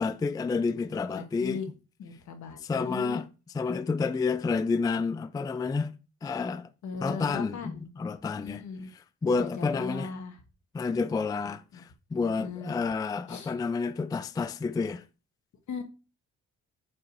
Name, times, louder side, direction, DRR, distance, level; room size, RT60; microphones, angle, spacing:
voice 1, 0.0-1.6 2.6-3.3 3.5-5.9 6.2-6.7 7.0-8.6 9.2-10.1 10.7-15.0, left 4 dB, 15° left, 0.3 m, -29 dB
voice 2, 1.1-1.7 2.0-3.2 6.8-7.9 8.3-8.9 9.2-10.4 11.4-11.9 12.2-12.8 13.3-13.5 15.7-15.8, left 5 dB, 70° left, 1.3 m, -38 dB
6.3 x 3.9 x 4.6 m
cardioid pair, 90°, 30 cm